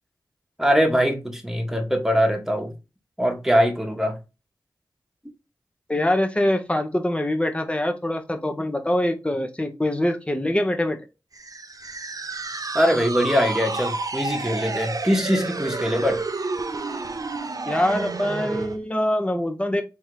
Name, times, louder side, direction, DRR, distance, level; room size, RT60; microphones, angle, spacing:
voice 1, 0.6-2.7 3.2-4.2 12.7-16.2, equal, 5° right, 1.3 m, -22 dB
voice 2, 5.9-11.0 17.7-19.8, left 1 dB, 15° left, 1.0 m, -24 dB
sound 1, 11.3-18.8, right 3 dB, 50° right, 0.6 m, -30 dB
3.5 x 2.9 x 4.8 m
cardioid pair, 45°, 8 cm